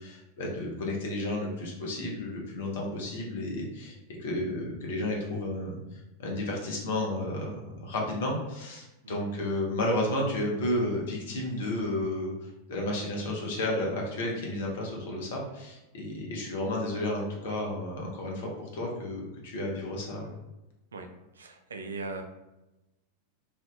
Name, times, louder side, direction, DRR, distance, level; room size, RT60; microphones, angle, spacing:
voice 1, 0.0-20.3, left 1 dB, 55° left, -1 dB, 0.8 m, -32 dB
voice 2, 21.4-22.2, right 3 dB, 70° right, 5 dB, 0.3 m, -39 dB
2.6 x 2.4 x 2.2 m, 0.97 s
figure-of-eight pair, 90°, 0 cm